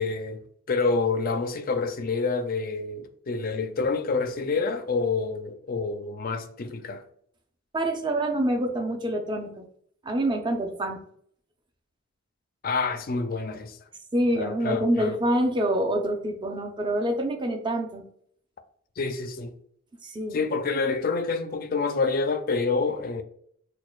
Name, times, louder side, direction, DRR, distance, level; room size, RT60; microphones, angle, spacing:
voice 1, 0.0-7.0 12.6-13.8 14.4-15.1 19.0-19.5 20.3-23.2, left 4 dB, 40° left, 0.4 m, -27 dB
voice 2, 7.7-9.7 10.0-11.0 14.1-18.0 20.0-20.4, right 1 dB, 20° right, 0.5 m, -26 dB
6.2 x 2.2 x 2.3 m
head